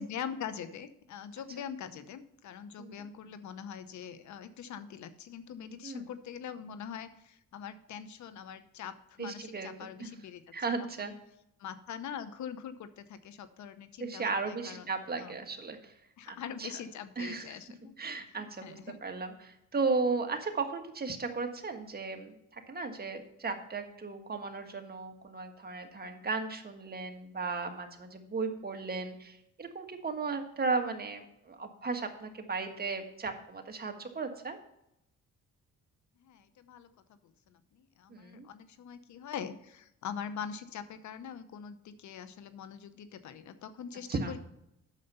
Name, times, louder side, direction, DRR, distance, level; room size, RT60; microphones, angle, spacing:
voice 1, 0.0-10.4 11.0-11.1 11.6-14.9 15.2-15.4 16.2-18.0 18.6-19.0 36.2-36.9 37.2-44.4, left 8 dB, 70° left, 13 dB, 0.9 m, -43 dB
voice 2, 9.2-9.9 10.5-11.1 14.0-15.9 16.3-16.7 17.2-17.6 18.0-34.6 38.1-38.5 44.1-44.3, right 4 dB, 30° right, 5 dB, 1.6 m, -35 dB
9.1 x 6.8 x 5.5 m, 0.80 s
cardioid pair, 90°, 30 cm